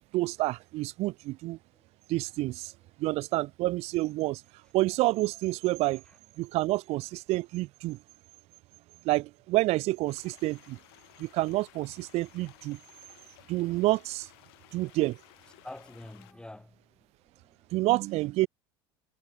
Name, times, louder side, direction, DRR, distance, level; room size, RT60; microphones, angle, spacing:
voice 1, 0.0-1.6 2.1-2.7 3.0-4.4 4.7-6.0 6.4-8.0 9.0-10.8 11.2-12.8 13.5-14.3 14.7-15.2 17.7-18.5, right 19 dB, 55° right, 0.7 m, -28 dB
sound 1, 10.1-16.3, left 25 dB, 70° left, 7.4 m, -57 dB
voice 2, 15.6-17.7 18.2-18.3, left 1 dB, 5° left, 5.4 m, -48 dB
hypercardioid pair, 85°, 13 cm